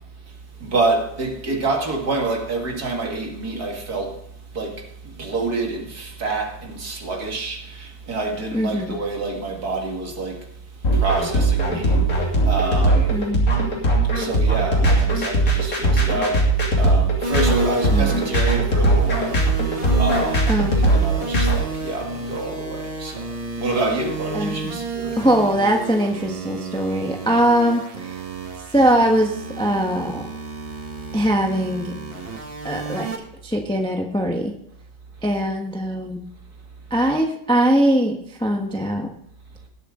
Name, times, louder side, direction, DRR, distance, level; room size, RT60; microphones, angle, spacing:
voice 1, 0.6-4.2 4.5-10.5 10.9-13.2 14.1-19.4 20.0-23.3 23.6-25.2, right 3 dB, 50° right, 2.4 m, -27 dB
voice 2, 8.5-8.9 13.1-13.4 17.9-18.3 20.5-20.7 24.3-24.8 25.2-28.2 28.7-30.2 31.1-31.9 32.6-33.1 33.4-34.5 35.2-36.2 36.9-39.1, right 1 dB, 5° left, 0.9 m, -21 dB
sound 1, 10.8-21.5, right 2 dB, 45° left, 3.2 m, -19 dB
sound 2, 17.2-33.2, right 2 dB, 30° right, 1.7 m, -32 dB
19.0 x 8.1 x 3.8 m
omnidirectional pair, 2.1 m